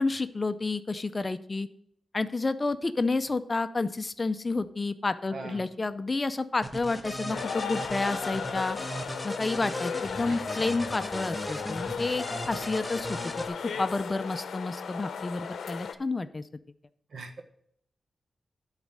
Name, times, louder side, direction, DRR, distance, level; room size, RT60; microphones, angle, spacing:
voice 1, 0.0-1.7 2.1-8.8 9.2-16.4, left 3 dB, 30° left, 12 dB, 0.5 m, -30 dB
voice 2, 5.3-5.7 10.3-10.8 17.1-17.4, right 3 dB, 70° right, 5 dB, 1.2 m, -41 dB
sound 1, 6.6-13.5, equal, 5° left, 1.0 m, -37 dB
sound 2, 7.3-15.9, left 6 dB, 85° left, 0.7 m, -36 dB
10.5 x 4.1 x 7.7 m, 0.68 s
wide cardioid pair, 100°, 0 cm